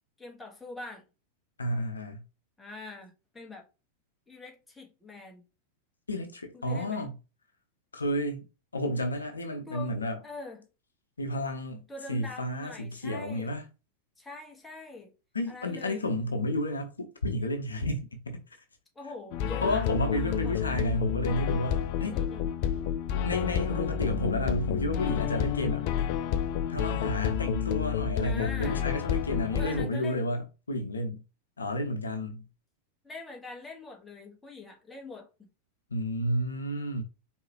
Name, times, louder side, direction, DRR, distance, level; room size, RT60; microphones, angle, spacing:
voice 1, 0.2-1.0 2.6-3.6 4.3-5.4 6.5-7.0 9.7-10.0 10.2-10.7 11.9-13.6 14.2-15.1 15.5-16.0 18.9-20.9 22.0-22.5 28.2-28.8 29.5-30.3 33.0-35.5, left 3 dB, 10° left, 1.6 m, -44 dB
voice 2, 1.6-2.2 6.1-7.1 7.9-8.4 8.7-10.2 11.2-11.8 12.1-13.7 15.3-18.4 19.6-22.2 23.2-25.9 26.7-31.2 31.6-32.4 35.9-37.0, left 1 dB, 75° left, 0.8 m, -31 dB
sound 1, 19.3-29.8, left 9 dB, 45° left, 0.4 m, -30 dB
4.7 x 3.5 x 3.0 m
figure-of-eight pair, 90°, 0 cm